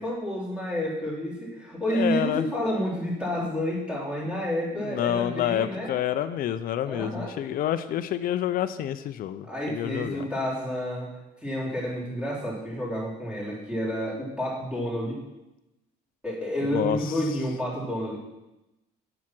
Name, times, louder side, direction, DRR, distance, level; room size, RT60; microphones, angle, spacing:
voice 1, 0.0-5.9 6.9-7.4 9.5-15.2 16.2-18.2, equal, 5° right, -6 dB, 3.7 m, -30 dB
voice 2, 1.9-2.5 4.9-10.3 16.7-17.0, left 11 dB, 60° left, 11 dB, 0.5 m, -28 dB
7.3 x 6.1 x 6.0 m, 0.98 s
cardioid pair, 110°, 17 cm